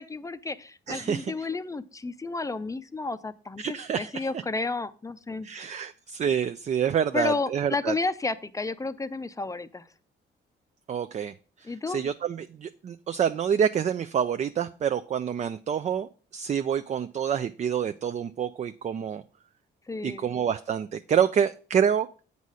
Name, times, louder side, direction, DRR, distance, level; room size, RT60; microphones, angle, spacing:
voice 1, 0.0-5.5 7.1-9.9 11.6-12.0 19.9-20.3, left 3 dB, 15° left, 13 dB, 0.5 m, -32 dB
voice 2, 0.9-1.3 3.6-4.3 5.4-7.9 10.9-11.3 11.9-19.2 20.0-22.1, right 8 dB, 35° right, 11 dB, 0.4 m, -27 dB
8.2 x 4.1 x 6.1 m, 0.39 s
cardioid pair, 90°, 20 cm